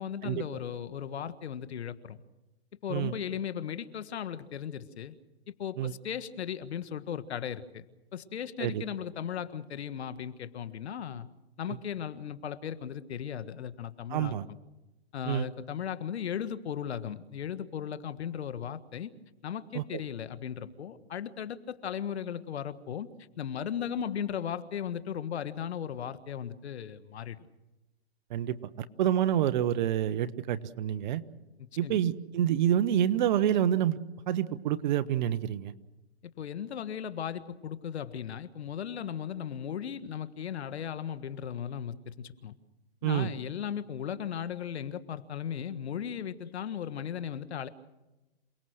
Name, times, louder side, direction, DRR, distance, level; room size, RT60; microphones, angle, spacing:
voice 1, 0.0-2.2 2.8-5.1 5.6-7.8 8.1-11.3 11.6-14.6 15.1-19.1 19.4-23.1 23.4-27.4 31.8-32.0 36.4-42.6 43.0-47.7, left 8 dB, 75° left, 13 dB, 1.6 m, -37 dB
voice 2, 14.1-14.5 15.2-15.5 19.7-20.0 28.3-28.7 29.0-31.2 31.8-34.0 34.3-35.7 43.0-43.3, right 11 dB, 45° right, 14 dB, 1.1 m, -28 dB
28.0 x 19.0 x 6.5 m, 1.0 s
hypercardioid pair, 145°, 33 cm